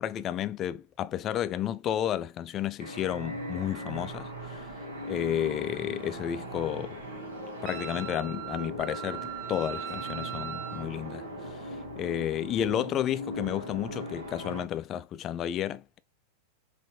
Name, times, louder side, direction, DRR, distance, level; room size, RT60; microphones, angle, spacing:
voice 1, 0.0-4.6 5.0-7.0 7.6-11.2 11.5-11.6 12.0-16.0, left 11 dB, 30° left, 0.4 m, -32 dB
sound 1, 2.8-14.6, right 1 dB, 65° right, 1.2 m, -39 dB
Wind instrument woodwind instrument, 7.6-10.9, right 9 dB, 45° right, 0.6 m, -39 dB
5.6 x 2.6 x 2.3 m
figure-of-eight pair, 90°, 0 cm